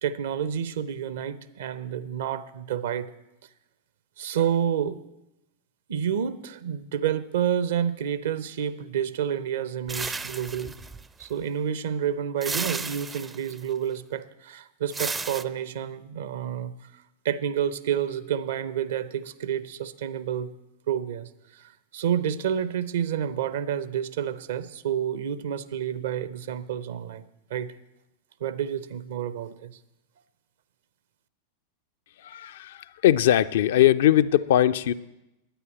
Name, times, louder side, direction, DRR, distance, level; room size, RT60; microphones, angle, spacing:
voice 1, 0.0-3.1 4.2-5.0 5.9-10.7 11.2-16.7 17.2-20.5 20.9-27.2 27.5-27.7 28.4-29.8, right 9 dB, 60° right, 15 dB, 0.7 m, -29 dB
sound 1, 9.9-11.3 12.4-13.6 14.9-15.4, right 4 dB, 15° right, 0.4 m, -33 dB
voice 2, 32.2-34.9, left 12 dB, 55° left, 12 dB, 0.4 m, -20 dB
10.0 x 9.6 x 9.1 m, 0.92 s
figure-of-eight pair, 90°, 0 cm